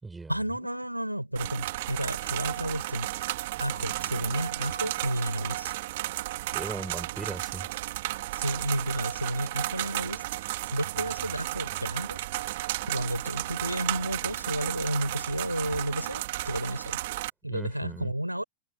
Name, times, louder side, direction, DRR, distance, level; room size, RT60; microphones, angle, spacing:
voice 1, 0.3-3.3 3.6-5.7 8.3-12.3 12.9-17.0 17.4-18.4, right 1 dB, 90° right, 6.9 m, -32 dB
sound 1, 1.4-17.3, right 17 dB, 55° right, 2.3 m, -33 dB
voice 2, 6.5-7.7 17.4-18.1, right 3 dB, 10° right, 6.4 m, -38 dB
figure-of-eight pair, 90°, 0 cm